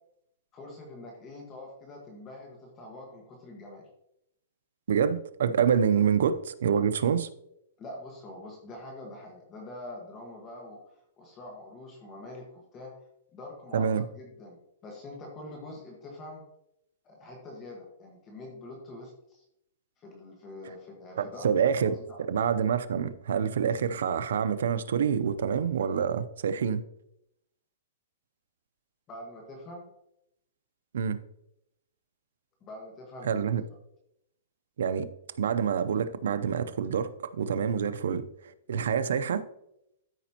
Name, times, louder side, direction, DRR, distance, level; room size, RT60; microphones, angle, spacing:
voice 1, 0.5-3.8 7.8-10.8 11.2-13.0 13.3-16.4 17.0-19.4 20.0-21.5 21.8-22.2 29.1-29.9 32.6-33.4, left 1 dB, 20° left, 1.4 m, -45 dB
voice 2, 4.9-7.3 13.7-14.0 21.2-26.8 30.9-31.2 33.2-33.6 34.8-35.1 35.4-37.1 37.4-38.2 38.7-39.4, right 7 dB, 80° right, 0.5 m, -26 dB
13.0 x 5.1 x 2.9 m
hypercardioid pair, 160°, 0 cm